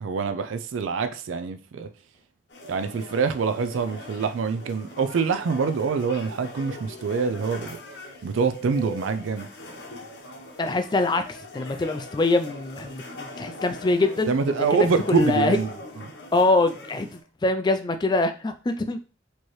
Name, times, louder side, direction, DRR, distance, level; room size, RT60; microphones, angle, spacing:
voice 1, 0.0-1.9 2.7-7.8 8.2-9.5 14.2-15.7, right 5 dB, 85° right, 0.4 m, -25 dB
sound 1, 2.5-17.2, left 1 dB, 60° left, 0.8 m, -41 dB
voice 2, 10.6-14.3 14.7-15.6 16.3-19.0, left 2 dB, 20° left, 0.3 m, -24 dB
4.4 x 2.9 x 3.1 m
head